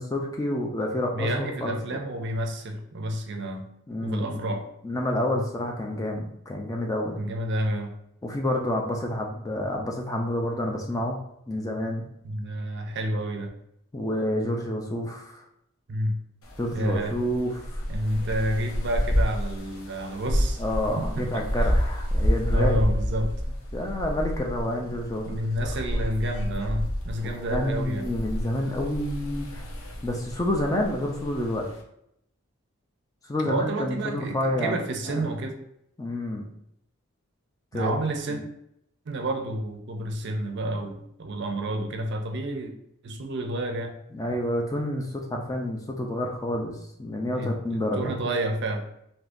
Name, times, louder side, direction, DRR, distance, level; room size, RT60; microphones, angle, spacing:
voice 1, 0.0-1.8 3.9-4.6 4.8-7.2 8.2-11.2 11.5-12.1 13.9-15.4 16.6-17.8 20.3-22.8 23.7-25.4 27.2-29.6 30.0-31.7 33.3-34.8 35.1-35.3 36.0-36.5 37.7-38.0 38.3-38.4 44.1-48.2, left 1 dB, 15° left, 1 dB, 0.4 m, -29 dB
voice 2, 1.1-3.7 4.0-4.6 5.3-5.4 7.2-7.9 12.2-13.5 15.9-16.2 16.7-17.2 17.9-20.6 21.0-21.5 22.5-23.4 25.3-28.1 33.4-35.6 37.7-38.4 39.1-42.7 43.0-43.9 47.3-48.9, right 1 dB, 55° right, 4 dB, 0.5 m, -29 dB
sound 1, 16.4-31.8, equal, 75° left, 0.6 m, -29 dB
3.6 x 2.7 x 2.5 m, 0.77 s
head